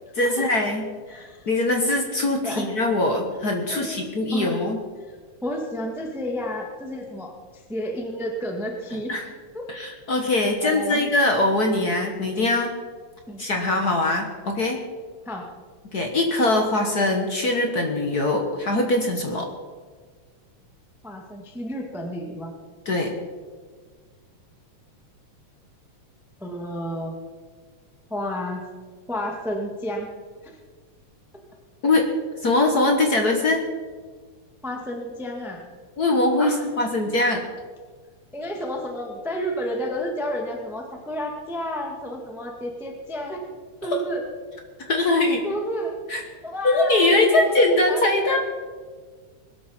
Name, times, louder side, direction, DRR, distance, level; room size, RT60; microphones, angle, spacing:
voice 1, 0.2-0.8 1.1-4.8 9.1-9.3 9.7-12.7 13.4-14.8 15.9-19.5 22.8-23.2 31.8-32.1 32.4-33.6 36.0-37.4 43.9-44.0 44.9-45.4 46.1-46.2 46.6-48.4, left 2 dB, 55° left, 3 dB, 1.1 m, -22 dB
voice 2, 1.1-1.5 2.4-2.7 3.6-4.1 4.3-4.6 5.4-9.1 9.5-9.7 10.6-11.0 13.3-13.4 15.2-15.5 21.0-22.5 26.4-27.2 28.1-28.6 29.1-30.1 30.4-30.6 34.6-35.7 36.4-36.7 38.3-43.5 43.8-44.2 45.4-48.4, equal, ahead, 1 dB, 0.8 m, -31 dB
21.0 x 12.5 x 4.4 m, 1.5 s
omnidirectional pair, 3.6 m